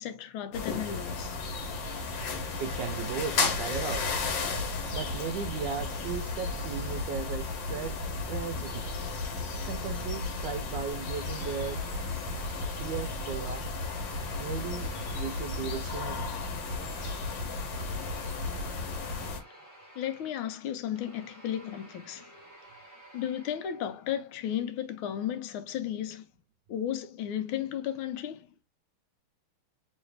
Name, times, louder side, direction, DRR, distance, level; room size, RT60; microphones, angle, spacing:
voice 1, 0.0-1.4 19.9-22.3 23.1-26.3 26.7-28.5, left 10 dB, 80° left, 1.4 m, -34 dB
sound 1, 0.5-19.4, left 3 dB, 65° left, 1.5 m, -34 dB
voice 2, 2.6-4.2 4.9-8.0 8.3-8.9 9.6-11.8 12.5-13.7 14.4-16.3, right 6 dB, 75° right, 1.1 m, -36 dB
sound 2, 10.9-13.3 13.7-24.1, right 1 dB, 15° right, 0.6 m, -53 dB
3.1 x 3.1 x 3.2 m
omnidirectional pair, 2.3 m